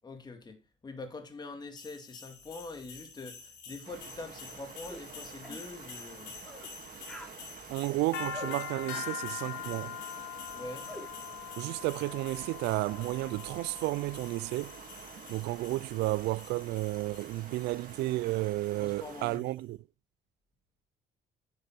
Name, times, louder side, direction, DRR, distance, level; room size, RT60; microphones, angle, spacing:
voice 1, 0.0-6.3 10.5-10.9 18.8-19.4, left 3 dB, 25° left, 2.4 m, -44 dB
sound 1, 1.8-19.5, left 7 dB, 90° left, 5.1 m, -45 dB
sound 2, 3.8-19.4, right 8 dB, 55° right, 2.7 m, -50 dB
sound 3, 4.9-5.1 5.4-5.7 6.4-6.7 7.0-7.4 8.3-8.6 8.9-9.2 10.9-11.1, equal, 5° left, 3.8 m, -44 dB
voice 2, 7.7-10.0 11.6-14.8 15.3-19.8, right 19 dB, 80° right, 0.4 m, -32 dB
10.0 x 9.6 x 4.4 m
cardioid pair, 110°, 17 cm